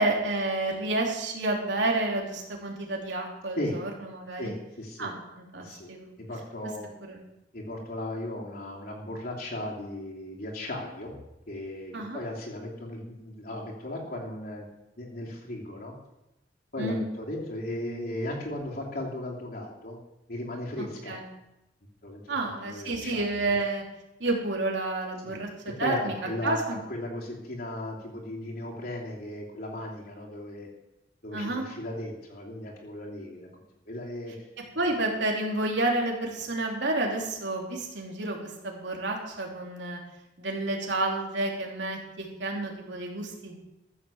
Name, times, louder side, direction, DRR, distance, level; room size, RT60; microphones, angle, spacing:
voice 1, 0.0-4.5 5.0-6.1 7.0-7.2 11.9-12.2 16.8-17.0 20.8-21.2 22.3-23.8 24.2-26.1 26.4-26.8 31.3-31.6 34.7-40.0 40.4-43.6, right 2 dB, 80° right, 0 dB, 3.1 m, -30 dB
voice 2, 4.4-5.1 5.6-5.9 6.2-6.9 7.5-11.2 11.5-14.6 15.0-16.0 16.7-20.0 20.3-21.2 22.0-22.4 22.6-23.6 25.2-25.4 25.8-26.6 26.9-30.7 31.2-34.3, left 1 dB, 55° left, -2 dB, 2.9 m, -36 dB
14.5 x 7.1 x 7.2 m, 0.92 s
head